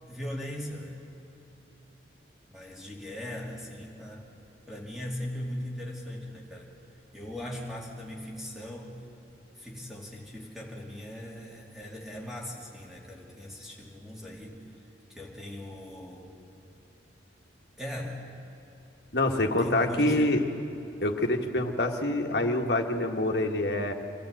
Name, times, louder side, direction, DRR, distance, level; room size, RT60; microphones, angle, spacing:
voice 1, 0.1-1.0 2.5-4.2 4.7-6.7 7.1-9.0 9.6-14.6 15.1-16.3 17.8-18.3 19.6-20.4, left 1 dB, ahead, -2 dB, 2.6 m, -39 dB
voice 2, 19.1-20.4 21.0-23.9, left 1 dB, 60° left, 3 dB, 1.5 m, -26 dB
25.5 x 14.0 x 7.8 m, 2.9 s
head